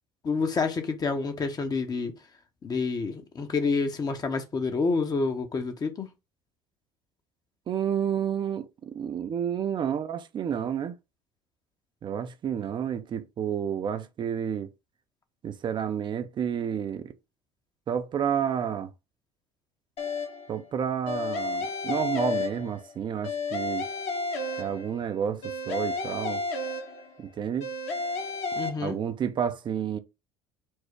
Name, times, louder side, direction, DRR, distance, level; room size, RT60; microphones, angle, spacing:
voice 1, 0.2-2.1 2.6-6.1 28.5-29.0, left 4 dB, 30° left, 0.8 m, -28 dB
voice 2, 7.7-10.9 12.0-14.7 15.4-17.1 17.9-18.9 20.5-23.9 24.6-26.4 27.2-27.7 28.8-30.0, right 8 dB, 40° right, 0.6 m, -30 dB
sound 1, 20.0-20.5 21.1-22.9 23.2-25.0 25.4-27.2 27.6-28.7, left 3 dB, 55° left, 1.2 m, -32 dB
4.5 x 2.1 x 4.6 m
hypercardioid pair, 70°, 12 cm